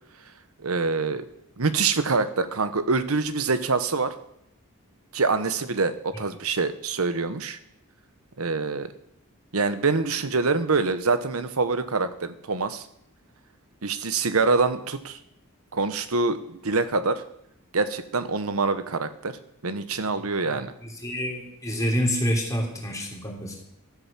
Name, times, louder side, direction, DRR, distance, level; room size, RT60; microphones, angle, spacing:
voice 1, 0.6-1.3 1.6-4.1 5.1-7.6 8.4-8.9 9.5-12.8 13.8-15.2 15.7-17.2 17.7-19.4 19.6-20.7, right 4 dB, 80° right, 12 dB, 1.0 m, -25 dB
voice 2, 21.0-23.6, equal, 15° left, 0 dB, 3.4 m, -27 dB
13.0 x 8.6 x 7.4 m, 0.78 s
head